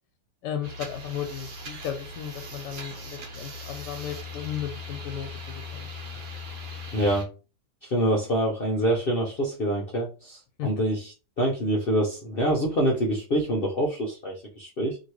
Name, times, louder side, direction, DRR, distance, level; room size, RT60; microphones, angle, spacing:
voice 1, 0.4-5.9 10.6-10.7, left 9 dB, 90° left, 5 dB, 1.2 m, -35 dB
sound 1, 0.6-7.2, left 2 dB, 70° right, 1.5 m, -39 dB
voice 2, 6.9-7.3 7.8-11.1 11.4-15.0, right 1 dB, 60° left, -2 dB, 0.6 m, -26 dB
2.8 x 2.8 x 3.0 m, 0.33 s
omnidirectional pair, 1.8 m